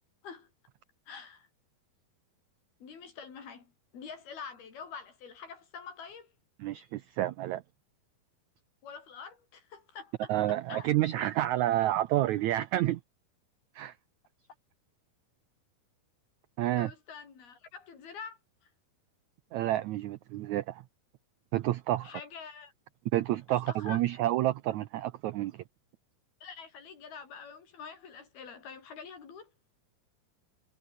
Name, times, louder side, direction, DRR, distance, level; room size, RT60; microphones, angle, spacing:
voice 1, 1.1-1.5 2.8-6.3 8.8-10.9 16.8-18.7 22.0-22.7 23.5-24.0 26.4-29.5, left 6 dB, 85° left, 6.6 m, -46 dB
voice 2, 6.6-7.6 10.3-13.0 13.7-13.9 16.6-16.9 19.5-20.8 21.5-22.1 23.1-25.6, right 14 dB, 90° right, 1.6 m, -29 dB
omnidirectional pair, 4.3 m